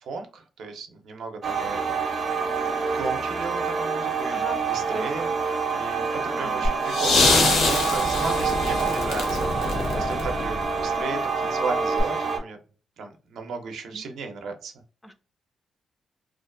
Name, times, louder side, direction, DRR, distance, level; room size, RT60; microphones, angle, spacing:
voice 1, 0.0-2.0 2.9-12.6 13.0-14.7, right 4 dB, 85° right, 4 dB, 0.6 m, -35 dB
sound 1, 1.4-12.4, right 5 dB, 45° right, 0.6 m, -27 dB
voice 2, 6.3-6.7 13.9-14.0 15.0-15.1, left 1 dB, 10° left, 8 dB, 0.3 m, -39 dB
sound 2, 6.6-10.8 12.0-12.1, left 3 dB, 80° left, 0.8 m, -24 dB
2.5 x 2.3 x 2.4 m, 0.37 s
wide cardioid pair, 150°, 0 cm